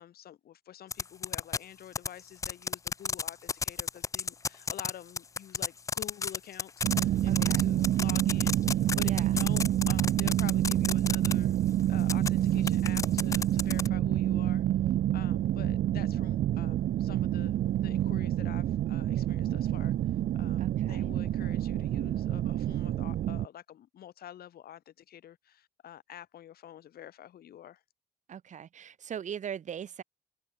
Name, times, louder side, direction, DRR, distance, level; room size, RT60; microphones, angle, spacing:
voice 1, 0.0-11.6 11.9-14.6 15.1-27.8, left 11 dB, 70° left, 6.0 m, -48 dB
sound 1, 0.9-1.6 1.9-4.9 5.2-11.3 12.0-12.3 12.7-13.9, left 5 dB, 20° left, 0.4 m, -30 dB
sound 2, 6.8-23.5, right 12 dB, 65° right, 0.7 m, -28 dB
voice 2, 7.3-7.6 9.0-9.4 20.6-21.1 28.3-30.0, right 8 dB, 45° right, 2.4 m, -40 dB
cardioid pair, 170°, 17 cm